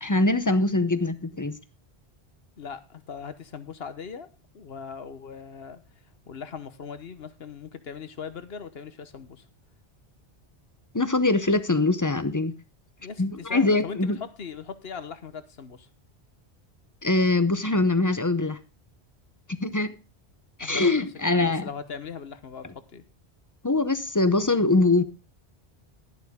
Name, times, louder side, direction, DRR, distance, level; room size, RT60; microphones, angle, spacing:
voice 1, 0.0-1.6 10.9-12.5 13.2-14.2 17.0-18.6 19.6-19.9 20.6-21.7 22.6-22.7 23.6-25.0, left 2 dB, 20° left, 0.7 m, -23 dB
voice 2, 2.6-4.3 4.5-5.8 6.3-9.4 13.0-15.9 20.6-23.0, left 6 dB, 65° left, 1.2 m, -39 dB
11.5 x 11.0 x 3.6 m
omnidirectional pair, 1.1 m